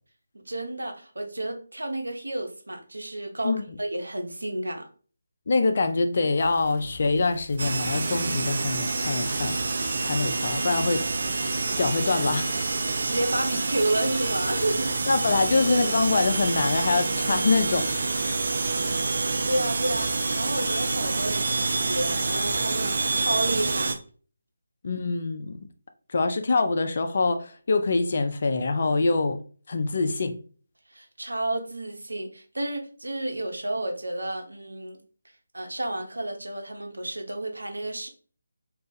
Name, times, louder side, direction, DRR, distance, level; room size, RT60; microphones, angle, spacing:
voice 1, 0.5-4.9 13.0-15.0 19.5-23.9 30.9-35.0 35.5-38.1, right 1 dB, 85° right, 0.8 m, -31 dB
voice 2, 5.5-9.6 10.0-11.1 11.8-12.6 15.1-18.1 24.8-25.6 26.1-29.4 29.7-30.4, left 3 dB, 50° left, 0.5 m, -24 dB
sound 1, 6.4-22.6, left 2 dB, 10° left, 1.0 m, -47 dB
sound 2, 7.6-24.0, right 3 dB, 55° right, 0.5 m, -27 dB
2.4 x 2.4 x 3.9 m
figure-of-eight pair, 155°, 0 cm